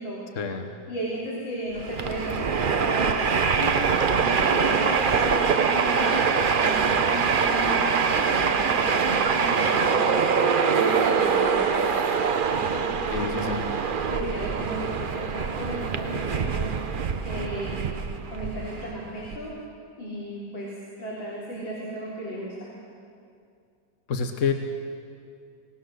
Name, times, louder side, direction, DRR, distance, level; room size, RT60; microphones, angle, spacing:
voice 1, 0.3-0.7 13.1-13.7 24.1-24.5, left 6 dB, 45° left, 5 dB, 1.3 m, -28 dB
voice 2, 0.9-3.2 3.5-3.8 4.1-12.1 12.5-13.5 14.1-16.8 17.2-17.8 18.3-19.5 20.0-20.7 21.0-22.7, equal, 85° left, -7 dB, 4.6 m, -34 dB
Train, 1.8-19.4, right 6 dB, 75° right, 0.4 m, -24 dB
25.0 x 18.5 x 6.5 m, 2.3 s
omnidirectional pair, 2.0 m